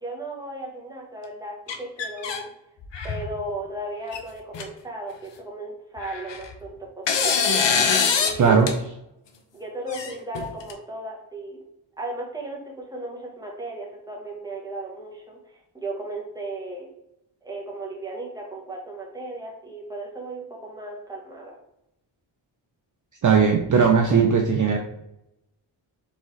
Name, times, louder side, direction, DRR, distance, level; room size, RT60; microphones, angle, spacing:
voice 1, 0.0-2.5 3.0-7.6 8.1-8.8 9.5-11.6 12.0-16.9 17.4-21.5, right 2 dB, 10° right, -2 dB, 1.1 m, -36 dB
sound 1, 1.7-2.4 2.8-3.3 4.1-4.2 4.5-4.6 6.0-6.5 7.1-8.4 8.7-8.8 9.9-10.7, left 6 dB, 65° left, 0.7 m, -23 dB
voice 2, 8.4-8.7 23.2-24.8, right 6 dB, 40° right, 3 dB, 0.5 m, -18 dB
4.0 x 3.7 x 3.1 m, 0.84 s
wide cardioid pair, 95°, 46 cm